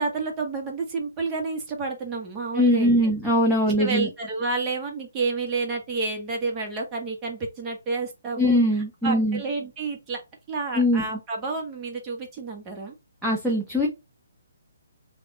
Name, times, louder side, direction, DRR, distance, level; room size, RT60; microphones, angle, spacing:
voice 1, 0.0-2.9 3.8-8.6 9.0-10.2 10.5-12.9, right 3 dB, 20° right, 1.1 m, -30 dB
voice 2, 2.5-4.1 8.4-9.4 10.7-11.0 13.2-13.9, left 1 dB, 5° right, 0.7 m, -21 dB
3.4 x 2.4 x 3.7 m
figure-of-eight pair, 145°, 0 cm